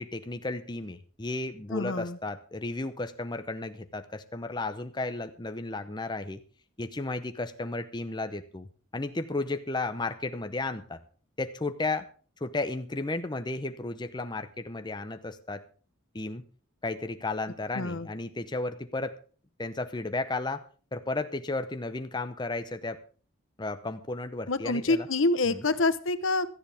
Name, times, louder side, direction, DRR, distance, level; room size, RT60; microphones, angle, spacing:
voice 1, 0.0-6.4 6.8-8.7 8.9-11.0 11.4-12.1 12.4-15.6 16.1-16.4 16.8-19.2 19.6-20.7 20.9-23.0 23.6-25.1 25.5-25.6, left 2 dB, 20° left, 9 dB, 0.7 m, -33 dB
voice 2, 1.7-2.2 17.7-18.1 24.5-26.5, left 2 dB, 70° left, 13 dB, 0.9 m, -27 dB
17.5 x 13.0 x 3.5 m, 0.39 s
head